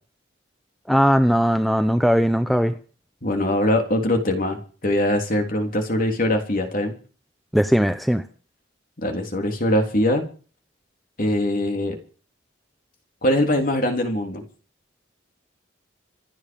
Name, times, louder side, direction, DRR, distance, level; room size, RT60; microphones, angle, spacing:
voice 1, 0.9-2.7 7.5-8.2, equal, ahead, 9 dB, 0.8 m, -19 dB
voice 2, 3.2-6.9 9.0-10.2 11.2-12.0 13.2-14.4, left 1 dB, 45° left, 3 dB, 3.6 m, -22 dB
26.5 x 9.7 x 5.4 m, 0.40 s
head